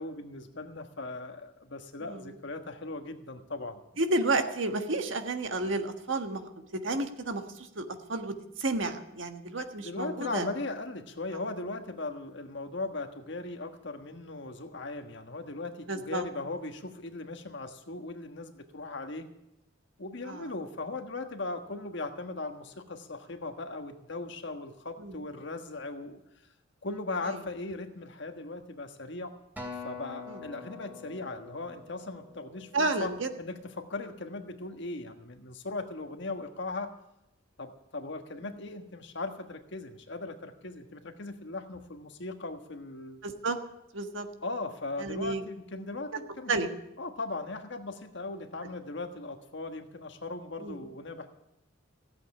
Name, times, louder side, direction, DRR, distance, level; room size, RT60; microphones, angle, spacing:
voice 1, 0.0-3.8 9.8-19.3 20.0-26.2 26.8-29.3 29.8-36.9 37.6-43.2 44.4-46.5 47.0-51.3, left 2 dB, 60° left, 6 dB, 1.4 m, -38 dB
voice 2, 4.0-6.4 6.7-10.5 15.9-16.2 20.3-20.5 25.0-25.2 27.2-27.3 30.3-30.4 32.7-33.3 38.4-38.5 43.2-43.6 43.9-44.3 45.0-45.4 46.5-46.7 50.6-50.8, right 2 dB, 70° right, 6 dB, 1.5 m, -31 dB
Acoustic guitar, 29.6-34.0 34.6-34.8, left 4 dB, 10° right, 2.8 m, -45 dB
16.0 x 8.2 x 9.7 m, 0.85 s
head